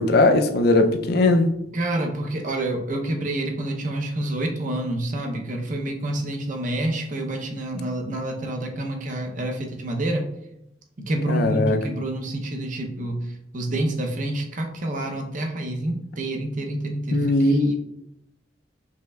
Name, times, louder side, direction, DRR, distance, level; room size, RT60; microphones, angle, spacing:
voice 1, 0.0-1.5 11.3-11.8 17.1-17.7, left 2 dB, 55° left, 0.4 m, -19 dB
voice 2, 1.7-10.3 11.1-17.7, right 1 dB, 45° right, 0.6 m, -28 dB
5.1 x 3.3 x 2.3 m
head